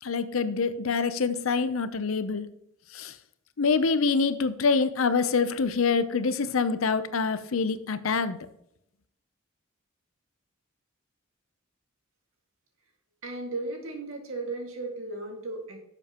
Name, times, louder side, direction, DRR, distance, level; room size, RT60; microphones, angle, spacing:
voice 1, 0.0-2.5 2.9-3.1 3.6-8.4, left 5 dB, 75° left, 12 dB, 0.7 m, -26 dB
voice 2, 13.2-15.8, right 2 dB, 75° right, 2 dB, 2.0 m, -35 dB
11.0 x 7.0 x 3.0 m, 0.78 s
head